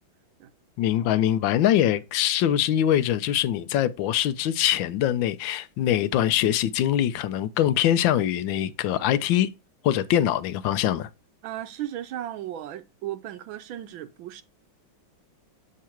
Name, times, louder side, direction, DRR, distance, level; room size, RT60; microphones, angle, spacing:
voice 1, 0.8-9.5 9.8-11.1, left 11 dB, 75° left, 1.3 m, -23 dB
voice 2, 11.4-14.4, right 12 dB, 85° right, 1.4 m, -35 dB
7.5 x 3.7 x 4.4 m
omnidirectional pair, 2.2 m